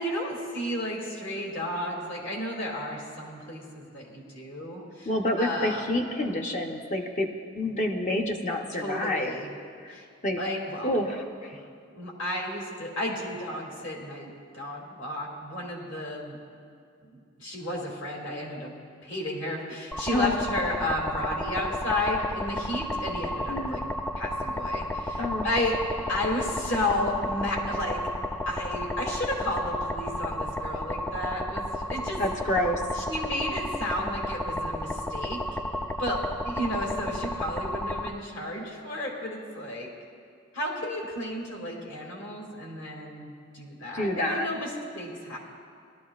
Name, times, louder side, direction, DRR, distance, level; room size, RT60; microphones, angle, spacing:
voice 1, 0.0-5.1 5.4-5.9 8.7-9.5 9.9-10.1 10.4-11.0 12.0-16.4 17.4-18.7 19.0-23.9 24.1-25.8 26.1-28.0 28.5-32.2 32.9-35.4 36.0-39.9 40.5-45.4, left 1 dB, 65° left, -1 dB, 2.2 m, -32 dB
voice 2, 5.1-7.3 7.5-9.3 10.2-10.4 10.8-11.6 20.1-20.3 23.5-23.8 25.2-25.5 32.2-32.8 43.9-44.5, left 1 dB, 40° left, 2 dB, 0.8 m, -28 dB
sound 1, 19.9-38.1, left 1 dB, 10° left, 0.4 m, -32 dB
18.5 x 12.0 x 2.4 m, 2.2 s
head